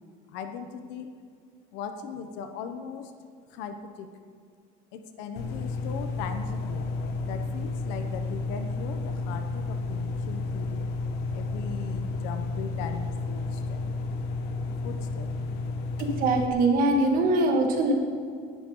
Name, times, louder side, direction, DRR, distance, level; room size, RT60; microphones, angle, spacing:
voice 1, 0.3-1.1 1.7-3.1 3.5-4.1 4.9-6.9 7.2-10.9 11.3-13.8 14.8-15.3, left 6 dB, 75° left, 7 dB, 1.2 m, -39 dB
sound 1, 5.4-16.5, left 3 dB, 60° left, 1.5 m, -32 dB
voice 2, 16.0-17.9, right 2 dB, 50° right, 2 dB, 2.1 m, -23 dB
18.5 x 11.5 x 4.0 m, 2.2 s
cardioid pair, 160°, 19 cm